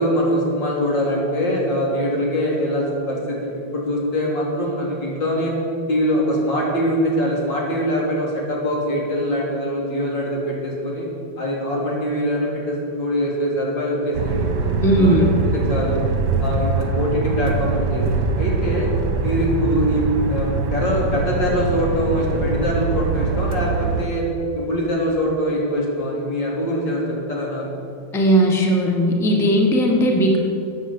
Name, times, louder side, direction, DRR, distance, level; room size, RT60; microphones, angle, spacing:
voice 1, 0.0-5.5 5.9-11.1 11.4-15.3 15.5-16.0 16.4-18.9 19.2-24.3 24.5-27.8, equal, 65° left, -3 dB, 3.8 m, -23 dB
sound 1, 14.1-24.0, right 4 dB, 60° right, 1.8 m, -23 dB
voice 2, 14.8-15.3 28.1-30.4, equal, ahead, 1 dB, 1.2 m, -17 dB
15.0 x 9.0 x 7.1 m, 2.7 s
omnidirectional pair, 2.2 m